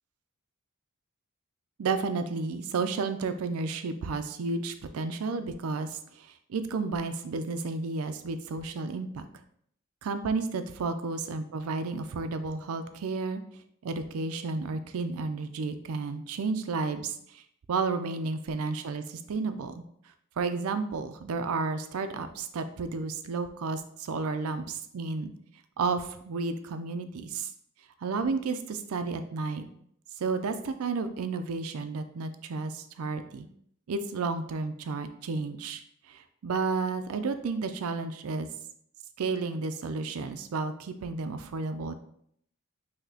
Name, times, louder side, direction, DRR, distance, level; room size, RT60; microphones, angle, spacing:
voice 1, 1.8-9.3 10.0-13.4 13.8-17.4 17.7-19.8 20.4-25.3 25.8-27.5 28.0-29.7 30.2-33.5 33.9-35.8 36.1-38.5 39.2-41.9, right 4 dB, 85° right, 9 dB, 0.4 m, -32 dB
5.9 x 2.8 x 2.8 m, 0.68 s
head